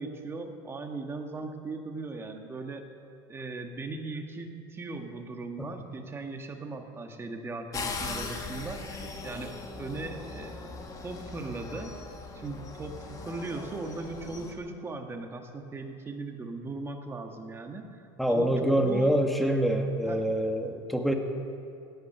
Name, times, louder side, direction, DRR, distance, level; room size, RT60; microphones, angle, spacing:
voice 1, 0.0-2.8 3.3-12.0 12.3-17.9 18.3-19.1 20.0-20.3, right 3 dB, 20° right, 4 dB, 1.5 m, -38 dB
sound 1, 7.7-14.5, left 3 dB, 30° left, 1.7 m, -39 dB
voice 2, 18.2-21.1, equal, ahead, 4 dB, 1.4 m, -25 dB
17.0 x 8.9 x 6.7 m, 2.5 s
supercardioid pair, 125°, 13 cm